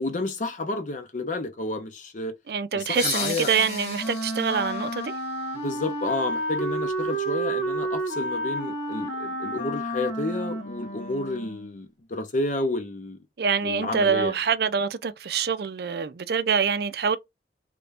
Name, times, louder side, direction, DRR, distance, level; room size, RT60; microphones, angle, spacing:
voice 1, 0.0-2.3 2.7-3.5 5.5-13.2 13.6-14.3, left 2 dB, 45° left, 0.6 m, -30 dB
voice 2, 2.5-5.2 13.4-17.2, right 6 dB, 60° right, 0.4 m, -25 dB
sound 1, 2.9-6.4, left 5 dB, 65° left, 1.3 m, -36 dB
Wind instrument woodwind instrument, 3.5-11.8, right 1 dB, 90° left, 1.4 m, -31 dB
3.3 x 2.6 x 3.4 m
head